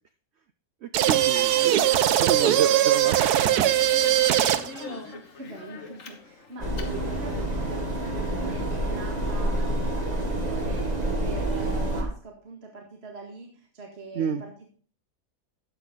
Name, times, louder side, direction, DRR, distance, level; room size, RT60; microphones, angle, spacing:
voice 1, 0.8-1.8 2.2-3.1 3.4-4.1 14.2-14.4, right 8 dB, 60° right, 11 dB, 0.7 m, -30 dB
sound 1, 0.9-4.8, right 12 dB, 85° right, 1.2 m, -21 dB
Speech, 1.0-7.4, left 5 dB, 55° left, 1.7 m, -43 dB
voice 2, 1.5-2.3 4.8-11.0 11.2-14.7, right 2 dB, 40° right, 0 dB, 2.1 m, -43 dB
sound 2, 6.6-12.0, right 1 dB, 25° right, 2.1 m, -28 dB
12.5 x 8.4 x 3.9 m, 0.41 s
omnidirectional pair, 1.6 m